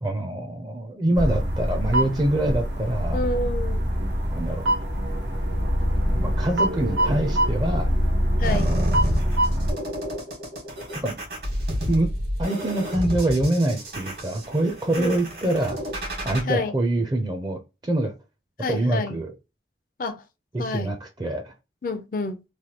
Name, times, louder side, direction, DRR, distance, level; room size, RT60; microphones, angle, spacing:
voice 1, 0.0-3.2 4.3-4.7 6.1-7.9 8.4-9.1 11.0-11.2 11.9-12.1 12.4-15.8 16.2-18.1 18.7-19.3 20.5-21.5, right 1 dB, 25° right, 0.5 m, -25 dB
sound 1, 1.1-9.7, equal, 85° right, 0.8 m, -24 dB
voice 2, 3.1-3.9 8.4-8.7 14.9-15.2 16.5-16.7 18.6-19.2 20.0-20.2 20.6-21.0 21.8-22.4, left 2 dB, 50° left, 0.4 m, -29 dB
sound 2, 8.4-16.4, equal, 65° right, 1.4 m, -31 dB
3.2 x 2.2 x 2.8 m
head